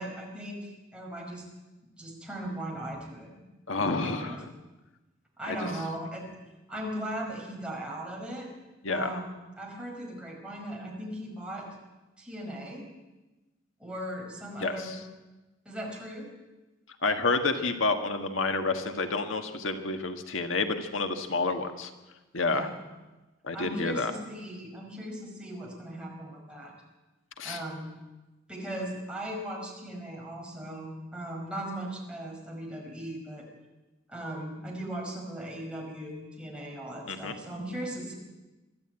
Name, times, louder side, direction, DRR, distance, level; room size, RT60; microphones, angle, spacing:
voice 1, 0.0-1.4 2.0-3.3 3.9-4.4 5.4-6.3 6.7-8.5 8.9-11.7 12.2-12.8 13.8-15.0 15.7-16.3 22.5-22.8 23.5-26.7 27.4-27.9 28.5-33.5 34.1-38.1, right 1 dB, 5° right, -1 dB, 5.1 m, -38 dB
voice 2, 3.7-4.4 5.4-5.6 8.8-9.1 14.6-15.0 17.0-21.9 22.3-22.7 23.4-24.1 27.4-27.6 37.1-37.3, left 3 dB, 85° left, 6 dB, 1.7 m, -29 dB
23.0 x 13.0 x 9.0 m, 1.1 s
head